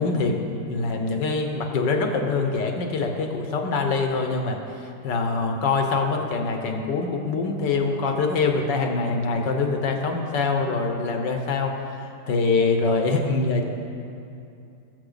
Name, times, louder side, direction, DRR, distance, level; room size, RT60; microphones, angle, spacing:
voice 1, 0.0-11.7 12.3-13.6, left 3 dB, 75° left, 3 dB, 1.8 m, -24 dB
20.0 x 7.3 x 4.0 m, 2.6 s
omnidirectional pair, 1.9 m